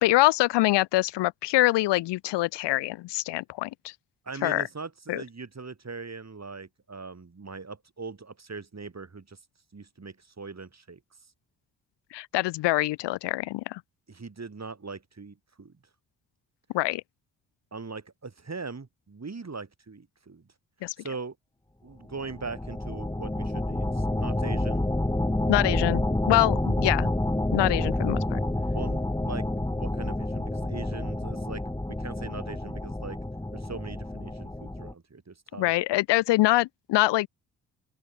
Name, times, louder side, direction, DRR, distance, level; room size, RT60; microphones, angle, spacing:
voice 1, 0.0-3.9 4.4-4.6 5.1-5.2 12.1-13.8 16.7-17.0 20.8-20.9 25.5-27.1 27.5-28.4 35.6-37.3, left 18 dB, 65° left, 0.6 m, -24 dB
voice 2, 4.3-9.4 9.7-11.0 14.1-15.7 17.7-20.5 21.0-21.4 21.8-24.8 28.7-33.2 33.5-35.7, right 4 dB, 35° right, 5.5 m, -40 dB
sound 1, 22.1-34.9, left 1 dB, 10° left, 1.5 m, -29 dB
open air
hypercardioid pair, 40°, 45 cm